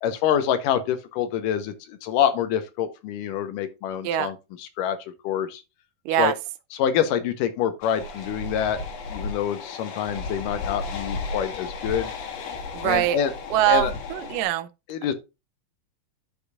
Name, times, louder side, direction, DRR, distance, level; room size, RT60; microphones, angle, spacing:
voice 1, 0.0-4.3 4.6-5.0 5.2-5.6 6.2-6.3 6.8-8.8 9.1-12.1 12.8-13.3 13.7-13.9 14.9-15.1, left 9 dB, 80° left, 2.4 m, -26 dB
sound 1, 7.8-14.4, left 3 dB, 60° left, 1.9 m, -34 dB
voice 2, 12.7-13.2 13.5-14.7, right 13 dB, 85° right, 2.2 m, -23 dB
12.0 x 4.9 x 2.3 m
omnidirectional pair, 3.9 m